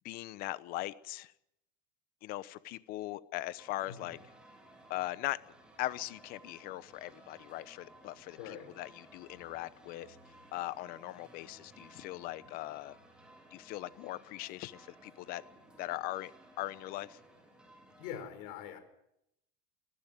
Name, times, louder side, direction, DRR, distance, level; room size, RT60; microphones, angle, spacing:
voice 1, 0.0-1.3 2.2-4.2 4.9-5.4 5.8-8.4 8.8-10.2 10.5-13.0 13.5-15.4 15.8-16.3 16.6-17.2, left 17 dB, 50° left, 18 dB, 0.9 m, -40 dB
sound 1, 3.6-18.2, right 1 dB, 5° right, 3.8 m, -58 dB
voice 2, 3.9-4.2 8.4-8.7 18.0-18.8, left 9 dB, 65° left, 9 dB, 4.4 m, -44 dB
19.5 x 14.5 x 9.2 m, 0.80 s
supercardioid pair, 145°, 20 cm